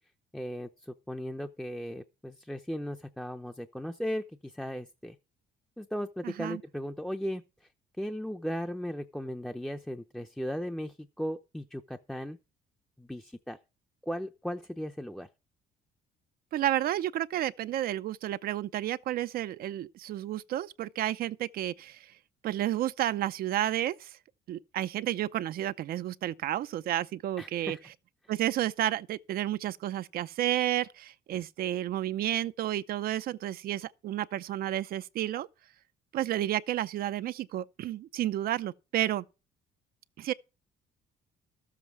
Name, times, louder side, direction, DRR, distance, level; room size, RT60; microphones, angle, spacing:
voice 1, 0.3-5.2 5.8-7.7 8.0-12.4 13.0-13.6 14.0-15.3 27.4-27.8, equal, 5° left, 0.7 m, -37 dB
voice 2, 6.2-6.6 16.5-22.1 22.4-24.2 24.5-27.8 28.3-35.5 36.1-39.2 40.2-40.3, right 13 dB, 65° right, 0.6 m, -31 dB
13.0 x 7.4 x 4.7 m
cardioid pair, 110°, 17 cm